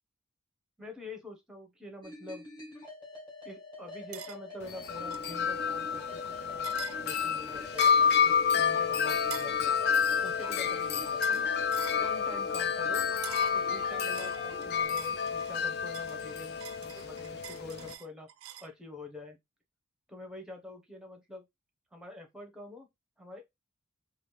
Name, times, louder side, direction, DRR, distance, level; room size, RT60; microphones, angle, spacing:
voice 1, 0.8-2.4 3.4-6.7 7.0-7.9 8.2-9.7 10.2-11.5 12.0-13.1 13.5-18.3 18.6-19.4 20.1-21.4 21.9-22.9 23.2-23.4, left 2 dB, 5° right, 0.7 m, -46 dB
sound 1, 2.0-14.9, left 1 dB, 20° left, 1.3 m, -47 dB
sound 2, 4.1-4.4 5.1-5.3 6.6-7.0 7.8-8.1 9.3-9.6 11.2-11.5 11.7-12.0 13.2-13.6 14.1-15.5 15.9-18.7, right 12 dB, 75° right, 0.3 m, -45 dB
Wind chime, 4.6-17.9, left 6 dB, 50° left, 0.4 m, -29 dB
3.1 x 2.5 x 3.0 m
head